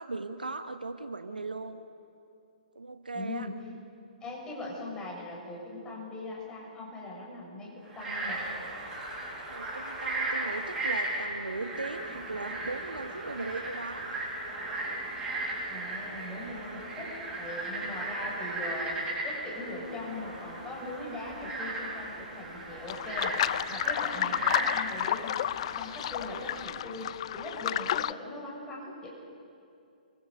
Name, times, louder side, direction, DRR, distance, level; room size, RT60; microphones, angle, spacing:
voice 1, 0.0-1.8 2.7-3.5 9.5-14.2 16.9-17.2 24.2-24.6, right 3 dB, 75° right, 9 dB, 1.3 m, -38 dB
voice 2, 3.1-3.5 4.2-8.4 15.7-25.4 25.7-29.1, left 2 dB, 15° left, -3 dB, 6.9 m, -40 dB
Frog, 7.9-26.6, right 2 dB, 15° right, 7.8 m, -36 dB
sound 1, 22.9-28.1, left 12 dB, 40° left, 0.5 m, -31 dB
28.5 x 23.5 x 5.3 m, 2.6 s
figure-of-eight pair, 120°, 5 cm